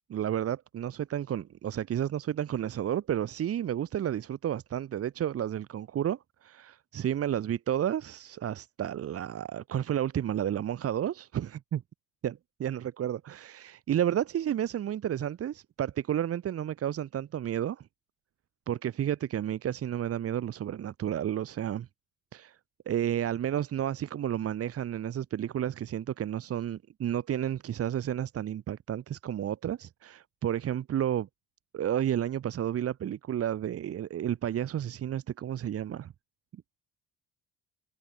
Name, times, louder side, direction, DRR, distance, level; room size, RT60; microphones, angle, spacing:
voice 1, 0.1-11.8 12.2-12.3 12.6-17.9 18.7-21.9 22.3-22.6 22.9-31.3 31.7-36.1, right 10 dB, 50° right, 2.5 m, -31 dB
cardioid pair, 120°, 30 cm